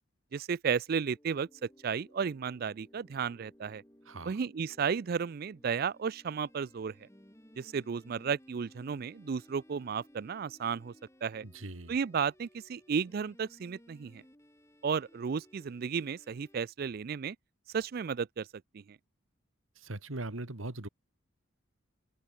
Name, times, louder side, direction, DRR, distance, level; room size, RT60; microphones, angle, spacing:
voice 1, 0.3-3.8 4.2-6.9 7.6-10.9 11.2-11.4 11.9-14.2 14.8-17.4 17.7-18.5 18.7-18.8, right 6 dB, 50° right, 0.4 m, -33 dB
sound 1, 0.9-16.6, equal, 15° left, 4.8 m, -60 dB
voice 2, 11.4-11.9 19.8-20.9, right 2 dB, 80° right, 2.0 m, -40 dB
open air
head